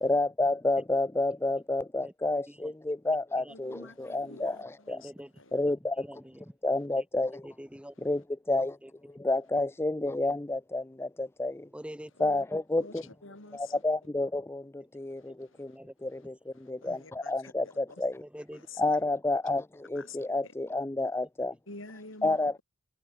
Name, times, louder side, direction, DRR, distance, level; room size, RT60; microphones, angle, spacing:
voice 1, 0.0-5.0 5.5-6.1 6.6-7.5 8.0-8.8 9.1-11.7 12.2-13.0 13.5-15.7 16.0-18.2 18.8-21.5 22.2-22.6, left 2 dB, 10° left, 0.4 m, -30 dB
voice 2, 3.5-5.7 12.2-12.4 12.8-13.8 15.2-15.6 16.1-16.2 16.5-18.0 18.5-19.0 19.9-20.2 20.4-20.5 21.7-22.6, left 3 dB, 75° left, 7.2 m, -49 dB
voice 3, 4.9-5.3 6.0-6.4 7.3-7.9 8.8-8.9 11.7-12.1 15.8-15.9 18.2-18.7, equal, 5° right, 3.7 m, -45 dB
head